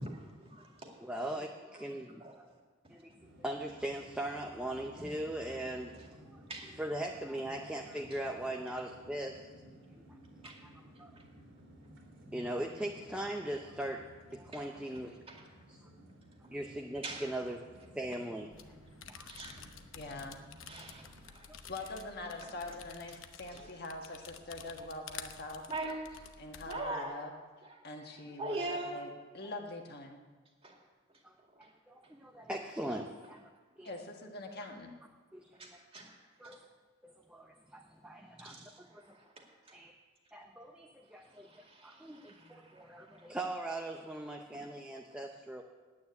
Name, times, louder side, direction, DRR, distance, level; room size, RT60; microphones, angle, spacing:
voice 1, 0.0-1.1 2.2-2.6 3.0-3.1 5.0-5.1 5.9-6.1 6.5-6.7 8.1-8.2 10.4-10.8 11.2-11.3 14.5-14.6 15.3-15.4 15.8-16.0 16.4-16.5 17.0-17.3 19.3-19.6 20.6-21.5 22.4-22.5 23.5-23.8 24.8-24.9 25.7-27.2 27.6-29.0 30.6-30.8 31.5-31.7 35.5-36.6 38.4-39.8 41.2-43.4 44.5-44.6, right 2 dB, 30° right, 0 dB, 2.2 m, -44 dB
voice 2, 1.0-2.2 2.9-5.9 6.3-6.4 6.8-9.5 10.4-10.5 11.0-11.1 12.2-15.2 15.7-15.9 16.5-17.6 17.9-18.5 19.1-19.3 20.9-21.1 21.5-21.6 31.2-33.5 33.8-33.9 35.3-35.8 36.4-36.6 37.0-39.2 39.7-39.9 40.3-41.5 41.8-45.6, right 1 dB, 5° right, 2 dB, 0.7 m, -40 dB
sound 1, 3.2-21.3, equal, 70° right, 2.9 m, -56 dB
sound 2, 18.5-26.8, left 7 dB, 80° left, 0.9 m, -51 dB
voice 3, 19.9-20.4 21.7-25.7 26.4-27.3 27.8-30.2 33.8-34.9, left 2 dB, 50° left, 2 dB, 1.5 m, -43 dB
9.5 x 9.3 x 9.5 m, 1.4 s
head